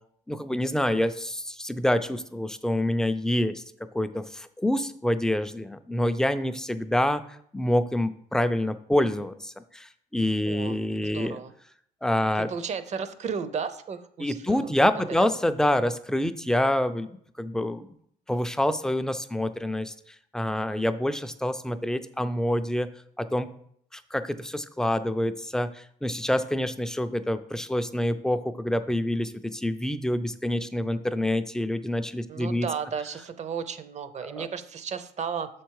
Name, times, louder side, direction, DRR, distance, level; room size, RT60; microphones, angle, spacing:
voice 1, 0.3-3.6 3.9-7.2 7.5-11.4 12.0-12.5 14.2-17.1 17.4-17.9 18.3-19.9 20.3-22.9 23.2-23.5 23.9-32.7 34.2-34.5, left 1 dB, 5° left, 10 dB, 0.4 m, -27 dB
voice 2, 10.5-11.5 12.4-14.9 15.2-15.3 32.3-35.5, right 6 dB, 45° right, 12 dB, 0.6 m, -34 dB
6.7 x 4.5 x 4.7 m, 0.66 s
cardioid pair, 110°, 17 cm